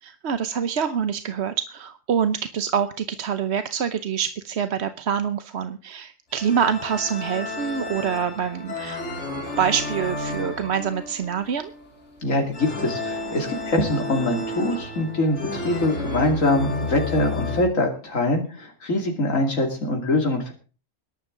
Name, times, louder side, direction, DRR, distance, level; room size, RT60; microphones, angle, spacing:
voice 1, 0.0-9.0 9.6-11.7, right 7 dB, 60° right, 10 dB, 1.1 m, -26 dB
sound 1, 6.3-17.6, left 1 dB, 65° left, 3.9 m, -32 dB
sound 2, 10.0-12.8, right 4 dB, 10° left, 6.2 m, -41 dB
voice 2, 12.2-20.5, left 2 dB, 90° left, 2 dB, 3.0 m, -23 dB
21.0 x 11.5 x 3.8 m, 0.36 s
omnidirectional pair, 1.3 m